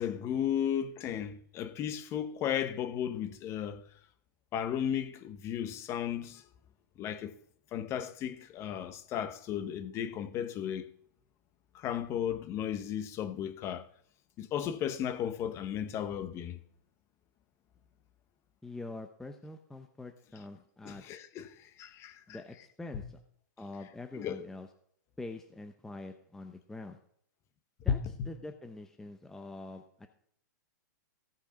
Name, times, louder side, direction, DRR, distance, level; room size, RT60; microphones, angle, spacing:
voice 1, 0.0-3.8 4.5-6.4 7.0-7.3 7.7-10.9 11.7-13.9 14.4-16.6 20.8-22.2 24.1-24.5 27.9-28.3, left 9 dB, 25° left, 1.0 m, -34 dB
voice 2, 18.6-21.0 22.3-23.2 23.6-24.7 25.2-27.0 27.8-30.1, left 2 dB, 5° left, 0.7 m, -45 dB
16.0 x 5.7 x 5.2 m
hypercardioid pair, 145°, 10 cm